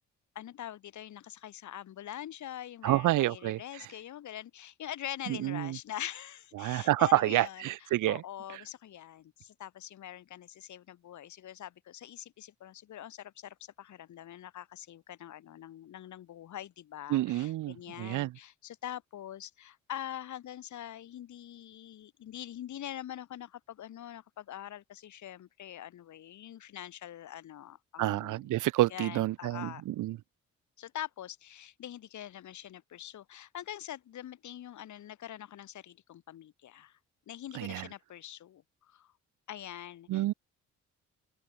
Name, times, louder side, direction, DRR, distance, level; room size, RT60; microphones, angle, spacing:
voice 1, 0.4-28.5 28.9-29.8 30.8-37.0 37.3-39.1 39.5-40.2, left 11 dB, 70° left, 5.4 m, -44 dB
voice 2, 2.8-3.6 5.4-5.7 6.6-8.2 17.1-18.3 28.0-30.2 37.5-37.8 40.1-40.3, right 16 dB, 90° right, 2.7 m, -28 dB
cardioid pair, 90°, 30 cm